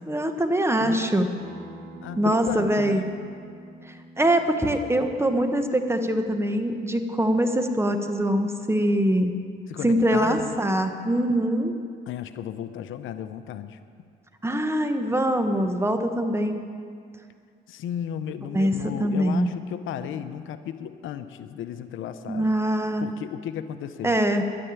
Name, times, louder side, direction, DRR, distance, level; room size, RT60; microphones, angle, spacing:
voice 1, 0.1-1.3 2.2-3.1 3.9-9.3 9.8-11.7 14.4-16.6 18.5-19.5 22.3-23.1 24.0-24.5, right 1 dB, 15° right, 6 dB, 1.2 m, -23 dB
voice 2, 0.8-1.1 2.0-3.1 9.7-10.6 12.1-13.8 17.7-22.5 23.0-24.2, left 9 dB, 80° left, 11 dB, 0.7 m, -34 dB
Acoustic guitar, 1.4-6.6, right 2 dB, 65° right, 4.3 m, -47 dB
11.0 x 10.0 x 9.0 m, 2.2 s
cardioid pair, 90°, 20 cm